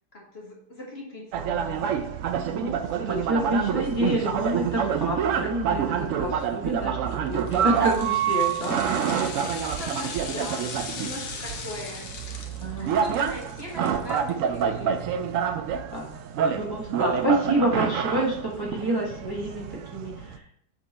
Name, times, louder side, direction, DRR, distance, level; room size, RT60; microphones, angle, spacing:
voice 1, 0.1-1.9 9.4-9.5 9.8-12.2 12.8-15.3, left 1 dB, 40° left, -3 dB, 1.6 m, -40 dB
sound 1, 1.3-20.4, right 8 dB, 70° right, 0.8 m, -27 dB
voice 2, 2.4-2.7 3.1-8.8 12.6-12.9 15.9-16.0 16.4-19.6 19.9-20.1, right 1 dB, 15° right, -5 dB, 1.2 m, -28 dB
sound 2, 7.3-14.6 15.0-15.1, left 5 dB, 60° left, 1.2 m, -39 dB
7.2 x 3.6 x 4.2 m, 0.66 s
omnidirectional pair, 1.7 m